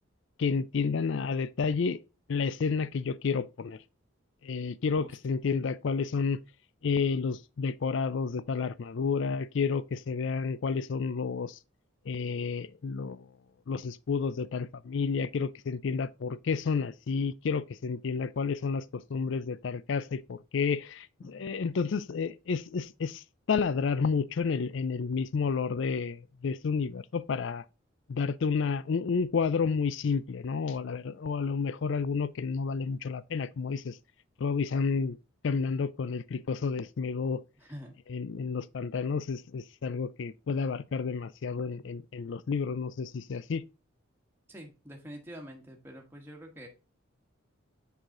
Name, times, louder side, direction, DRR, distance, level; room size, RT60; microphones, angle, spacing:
voice 1, 0.4-2.0 2.3-3.8 4.4-6.4 6.8-11.6 12.1-13.3 13.7-23.2 23.5-27.6 28.1-34.0 34.4-35.2 35.4-37.4 38.1-43.6, left 5 dB, 60° left, 0.4 m, -30 dB
voice 2, 44.5-46.7, equal, 10° right, 1.3 m, -46 dB
6.6 x 4.8 x 3.7 m
head